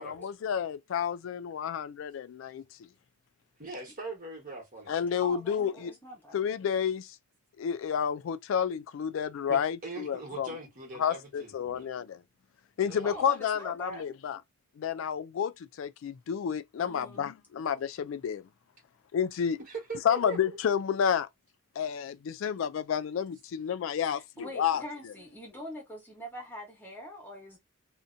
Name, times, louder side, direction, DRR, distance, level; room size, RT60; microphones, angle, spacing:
voice 1, 0.0-2.9 4.9-5.9 6.3-7.2 7.6-10.5 11.0-12.2 12.8-14.4 14.8-18.5 19.1-19.6 20.0-21.3 21.8-24.8, left 8 dB, 90° left, 0.3 m, -30 dB
voice 2, 3.6-5.0 9.5-11.9 12.8-13.2 19.7-20.6, right 2 dB, 45° right, 1.2 m, -41 dB
voice 3, 5.2-6.4 13.0-14.0 16.8-17.2 24.0-27.6, equal, 10° left, 0.9 m, -43 dB
2.6 x 2.2 x 2.5 m
head